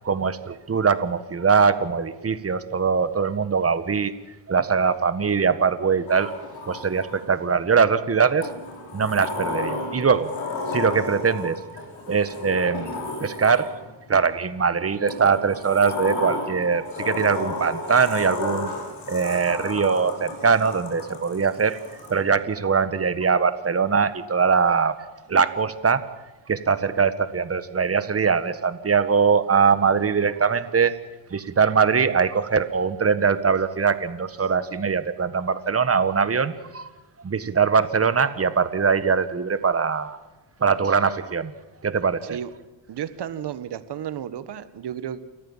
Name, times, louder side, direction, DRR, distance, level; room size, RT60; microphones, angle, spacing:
voice 1, 0.0-4.1 4.5-6.3 6.7-8.5 8.9-10.3 10.7-11.6 12.1-12.9 13.2-13.7 14.1-18.7 19.1-21.8 22.1-25.0 25.3-26.0 26.5-30.9 31.3-36.9 37.2-40.2 40.6-41.5 41.8-42.4, right 5 dB, 30° right, 12 dB, 1.6 m, -22 dB
Sliding door, 6.1-7.4 8.4-14.0 15.1-22.2, left 2 dB, 85° left, 5.2 m, -33 dB
voice 2, 42.9-45.2, right 9 dB, 60° right, 13 dB, 1.5 m, -33 dB
29.0 x 14.0 x 7.4 m, 1.1 s
cardioid pair, 90°, 46 cm